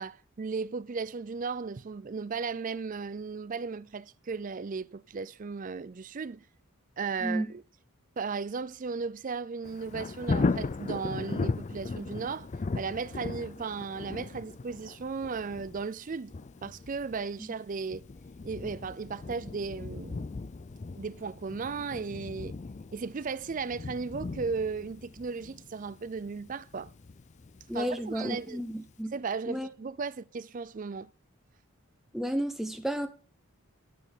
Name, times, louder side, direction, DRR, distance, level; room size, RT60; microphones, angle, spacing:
voice 1, 0.0-6.5 7.0-7.6 8.2-12.5 12.8-16.3 16.6-18.0 18.4-20.3 21.0-22.6 22.9-26.9 27.7-28.6 29.1-31.1, right 5 dB, 35° right, 0.4 m, -36 dB
voice 2, 7.2-7.5 17.4-17.5 27.7-29.1 29.5-29.7 32.1-33.1, equal, ahead, 1.1 m, -32 dB
Thunder, 9.6-28.4 28.9-29.0, left 3 dB, 35° left, 0.4 m, -37 dB
12.0 x 4.5 x 7.4 m
head